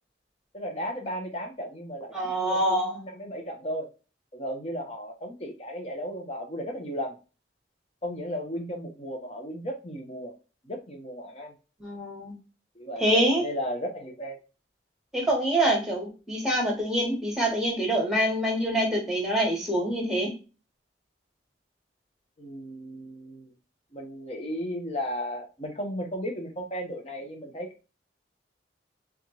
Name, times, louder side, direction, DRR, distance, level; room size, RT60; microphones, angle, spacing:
voice 1, 0.5-2.1 2.4-3.9 4.3-7.1 8.0-10.3 10.6-11.5 12.7-13.1 13.3-14.4 22.4-23.5 23.9-27.7, equal, 35° left, 2 dB, 1.0 m, -35 dB
voice 2, 2.1-3.0 11.8-12.3 13.0-13.4 15.1-20.3, right 1 dB, ahead, 0 dB, 1.4 m, -25 dB
3.6 x 3.5 x 2.9 m, 0.32 s
head